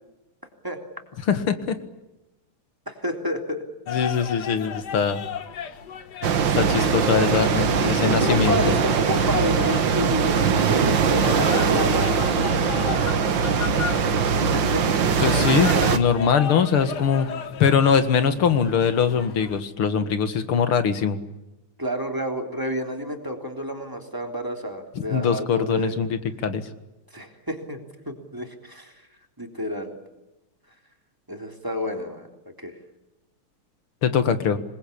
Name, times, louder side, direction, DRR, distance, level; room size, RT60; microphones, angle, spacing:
voice 1, 1.3-1.8 3.9-5.2 6.6-8.7 15.2-17.3 17.6-21.2 25.1-26.6 34.0-34.6, left 6 dB, 75° left, 10 dB, 2.6 m, -22 dB
voice 2, 2.9-3.6 7.7-12.6 14.5-14.9 21.8-25.9 27.1-27.8 28.1-28.9 29.4-29.9 31.3-32.3 32.6-32.7, equal, 10° right, 3 dB, 3.6 m, -30 dB
sound 1, 3.9-19.6, left 7 dB, 55° left, 1.7 m, -35 dB
sound 2, 6.2-16.0, right 6 dB, 60° right, 2.0 m, -21 dB
26.5 x 21.0 x 8.7 m, 0.99 s
omnidirectional pair, 2.4 m